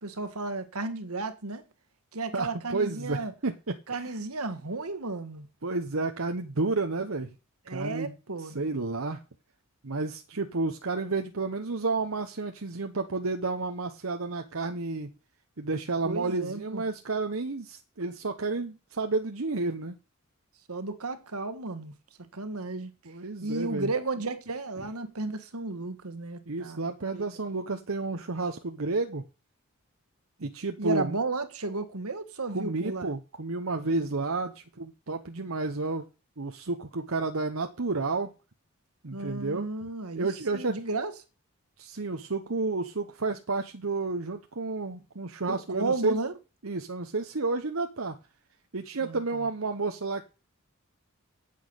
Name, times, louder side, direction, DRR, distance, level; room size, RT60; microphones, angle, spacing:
voice 1, 0.0-1.6 2.1-3.3 3.9-5.5 7.7-8.7 16.0-16.8 20.7-21.9 22.3-22.9 23.4-26.8 27.1-27.2 30.8-33.1 39.1-41.1 45.5-46.3 49.0-49.2, right 3 dB, 90° right, 1.7 m, -33 dB
voice 2, 2.3-4.1 5.6-7.3 7.7-8.1 8.4-9.2 9.8-15.1 15.6-20.0 23.0-23.9 26.5-29.2 30.4-31.2 32.5-36.0 36.4-38.3 39.0-39.9 40.1-40.8 41.8-46.2 46.6-48.2 48.7-50.2, right 3 dB, 70° right, 1.0 m, -31 dB
9.4 x 8.6 x 8.0 m
head